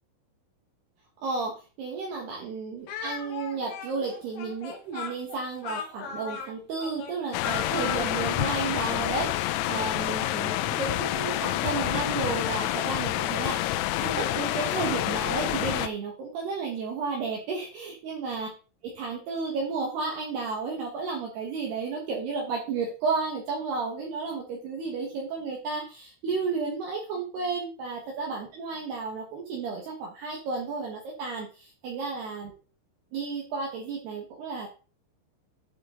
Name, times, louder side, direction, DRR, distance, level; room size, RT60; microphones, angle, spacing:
voice 1, 1.2-18.5 18.8-32.5 33.1-34.7, right 4 dB, 65° right, -2 dB, 3.3 m, -32 dB
Speech, 2.9-8.4, left 7 dB, 70° left, 3.5 m, -38 dB
sound 1, 7.3-15.9, left 14 dB, 90° left, 3.3 m, -28 dB
12.0 x 4.9 x 4.0 m, 0.35 s
omnidirectional pair, 5.8 m